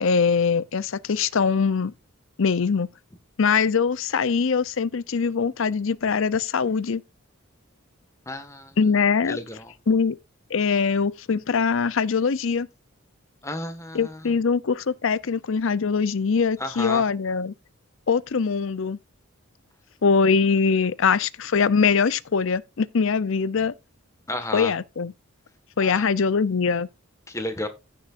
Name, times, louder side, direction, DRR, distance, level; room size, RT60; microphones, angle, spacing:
voice 1, 0.0-1.9 2.4-2.9 3.4-7.0 8.8-9.4 9.9-10.2 10.5-12.7 13.9-17.5 18.1-19.0 20.0-23.7 24.5-25.1 25.8-26.9, left 5 dB, 65° left, 0.6 m, -22 dB
voice 2, 8.2-8.8 9.3-9.7 13.4-14.3 16.6-17.1 24.3-24.7 25.8-26.1 27.3-27.7, left 1 dB, 15° left, 1.6 m, -32 dB
15.5 x 6.4 x 2.5 m
head